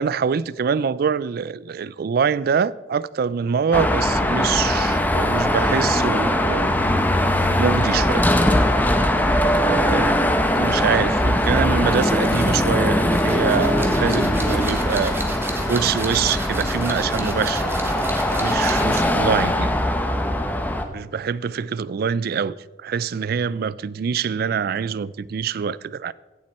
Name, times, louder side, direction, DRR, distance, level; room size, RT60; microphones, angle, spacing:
voice 1, 0.0-6.7 7.6-8.3 9.5-10.2 10.6-15.2 15.7-17.7 18.4-19.7 20.9-26.1, right 6 dB, 55° right, 0.3 m, -24 dB
Car passing by / Traffic noise roadway noise / Engine, 3.7-20.8, left 1 dB, 10° left, 0.8 m, -21 dB
sound 1, 12.2-19.2, right 2 dB, 15° right, 1.4 m, -33 dB
16.5 x 7.5 x 4.2 m
head